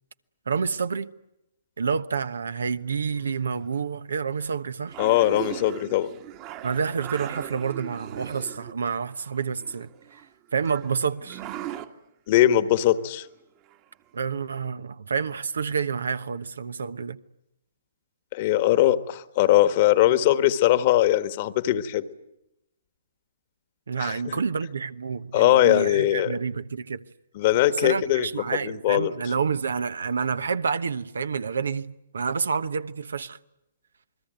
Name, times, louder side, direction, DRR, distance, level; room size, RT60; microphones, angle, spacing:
voice 1, 0.5-1.1 1.8-5.0 6.6-10.2 10.5-11.4 14.1-17.2 23.9-27.0 27.8-33.4, right 5 dB, 75° right, 1.1 m, -28 dB
sound 1, 3.1-3.6 4.4-4.5 4.9-8.7 9.1-10.3 10.6-11.9 13.7-13.8 14.2-14.3, right 12 dB, 35° right, 1.6 m, -39 dB
voice 2, 5.0-6.1 12.3-13.3 18.3-22.0 24.0-24.4 25.3-26.3 27.3-29.1, left 13 dB, 45° left, 1.5 m, -21 dB
28.0 x 21.0 x 9.2 m
hypercardioid pair, 130°, 0 cm